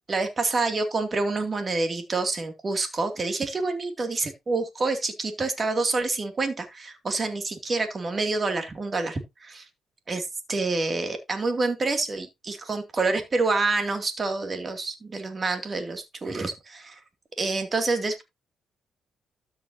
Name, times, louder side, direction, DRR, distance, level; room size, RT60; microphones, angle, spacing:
voice 1, 0.1-9.2 9.5-9.6 10.1-17.0 17.4-18.2, right 3 dB, 35° right, 2.5 m, -27 dB
13.0 x 5.9 x 2.8 m
cardioid pair, 90°, 0 cm